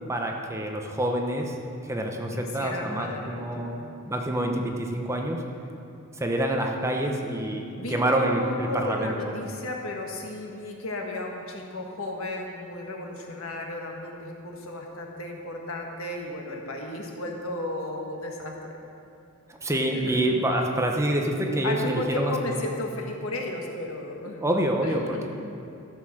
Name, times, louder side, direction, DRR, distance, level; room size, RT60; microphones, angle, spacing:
voice 1, 0.1-1.6 1.8-3.7 4.1-5.4 6.2-9.3 19.5-22.6 24.4-25.3, right 1 dB, 15° right, 2 dB, 0.9 m, -27 dB
voice 2, 2.3-3.8 7.8-18.8 19.9-20.2 21.6-24.4 24.8-25.3, left 1 dB, 75° left, 1 dB, 1.5 m, -34 dB
13.5 x 6.6 x 6.4 m, 2.7 s
head